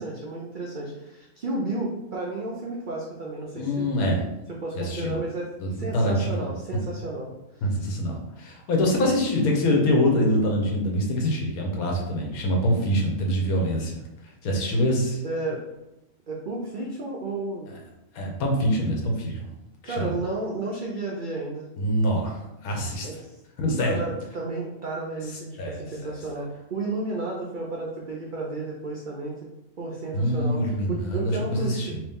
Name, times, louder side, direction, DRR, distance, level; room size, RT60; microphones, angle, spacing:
voice 1, 0.0-3.9 4.5-7.6 15.2-15.6 16.3-17.7 19.8-21.6 23.0-23.2 23.8-29.3 29.8-31.9, right 2 dB, 70° right, -3 dB, 0.4 m, -32 dB
voice 2, 3.5-4.2 4.7-5.2 5.6-6.5 7.6-14.0 14.4-15.2 18.1-19.4 19.8-20.1 21.8-23.1 23.6-24.0 25.6-25.7 26.0-26.2 30.1-32.0, equal, 75° left, 0 dB, 1.3 m, -25 dB
3.0 x 3.0 x 3.5 m, 0.92 s
omnidirectional pair, 1.5 m